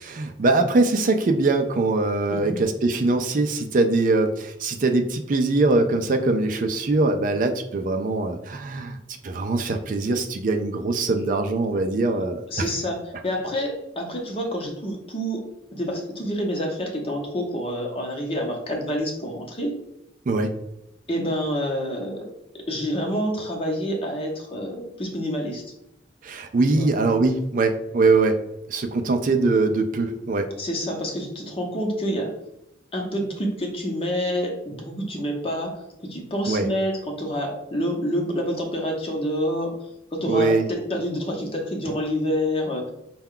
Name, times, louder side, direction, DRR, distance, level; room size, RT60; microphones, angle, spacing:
voice 1, 0.0-9.0 9.2-12.7 20.3-20.5 26.2-28.4 28.7-30.5 36.5-36.7 40.3-40.7, right 3 dB, 45° right, 6 dB, 0.4 m, -22 dB
voice 2, 2.3-2.6 12.5-15.4 15.7-19.8 21.1-22.3 22.7-25.6 26.7-26.9 30.6-32.3 32.9-39.7 40.1-42.9, equal, 30° left, 0 dB, 0.8 m, -28 dB
5.4 x 2.3 x 3.7 m, 0.85 s
head